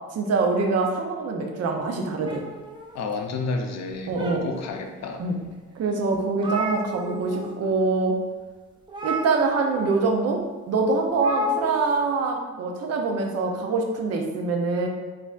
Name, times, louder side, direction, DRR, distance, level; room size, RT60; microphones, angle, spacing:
voice 1, 0.1-2.4 4.1-4.5 5.2-5.4 5.8-8.2 9.0-14.9, right 3 dB, 55° right, 2 dB, 0.6 m, -24 dB
sound 1, 2.2-3.4 3.9-4.8 5.4-5.5 5.8-5.9 6.1-7.5 7.8-8.0 8.9-9.9 11.1-12.0, right 3 dB, 15° right, 0.6 m, -34 dB
voice 2, 2.9-5.2, left 3 dB, 60° left, 4 dB, 0.5 m, -30 dB
4.0 x 2.6 x 2.4 m, 1.3 s
cardioid pair, 90°, 30 cm